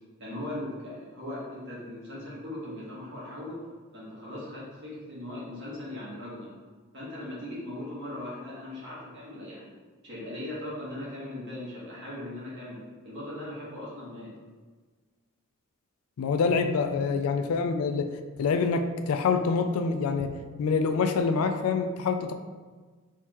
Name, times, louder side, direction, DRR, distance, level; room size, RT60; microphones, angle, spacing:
voice 1, 0.2-3.6 3.9-6.5 6.9-9.7 10.0-12.8 13.0-14.3, left 1 dB, 55° right, -7 dB, 1.3 m, -39 dB
voice 2, 16.2-22.3, left 5 dB, 75° left, 7 dB, 0.3 m, -26 dB
4.4 x 3.5 x 3.0 m, 1.4 s
head